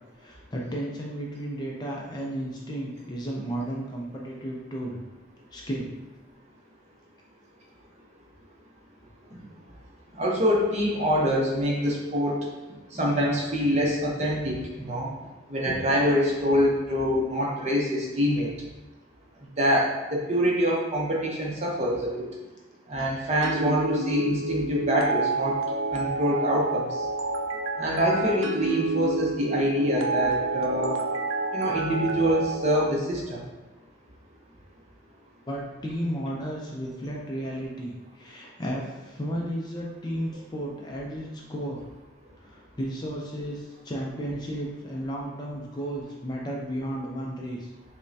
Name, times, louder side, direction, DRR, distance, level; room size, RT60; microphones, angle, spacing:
voice 1, 0.2-5.0 5.5-5.9 35.5-41.8 42.4-47.7, equal, 20° left, -2 dB, 0.4 m, -33 dB
voice 2, 10.1-12.5 12.9-15.1 15.5-18.5 19.6-22.2 22.9-25.6 25.9-26.9 27.8-30.9 31.5-33.4, equal, 35° right, -3 dB, 0.7 m, -25 dB
sound 1, 23.4-32.8, right 3 dB, 90° right, 0.4 m, -29 dB
5.2 x 2.1 x 2.7 m, 1.1 s
head